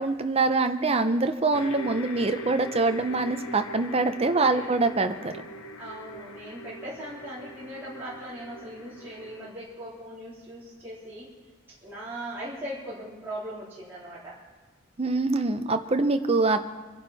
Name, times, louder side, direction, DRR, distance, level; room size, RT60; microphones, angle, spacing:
voice 1, 0.0-5.3 15.0-16.6, right 3 dB, 30° right, 7 dB, 0.7 m, -24 dB
sound 1, 1.5-9.5, equal, 85° left, 0.9 m, -42 dB
voice 2, 5.8-11.3 11.8-14.4, right 1 dB, 10° right, -10 dB, 3.4 m, -39 dB
24.0 x 11.0 x 4.2 m, 1.4 s
head